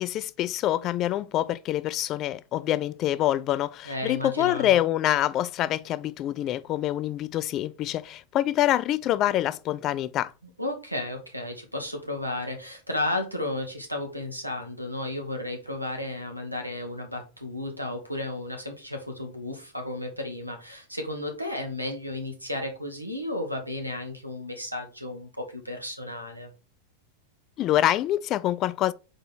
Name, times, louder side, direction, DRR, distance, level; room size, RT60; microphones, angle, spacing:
voice 1, 0.0-10.3 27.6-28.9, left 13 dB, 35° left, 0.3 m, -26 dB
voice 2, 3.8-4.8 10.6-26.5, left 1 dB, 90° right, 1.4 m, -33 dB
4.4 x 4.3 x 5.0 m
figure-of-eight pair, 90°, 0 cm